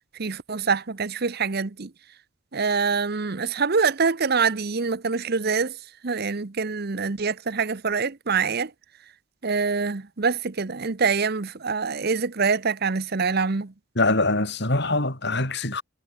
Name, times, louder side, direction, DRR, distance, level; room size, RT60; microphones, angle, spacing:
voice 1, 0.2-1.9 2.5-5.8 6.0-8.7 9.4-13.7, right 5 dB, 50° right, 0.9 m, -25 dB
voice 2, 14.0-15.8, left 2 dB, 55° left, 6.3 m, -23 dB
head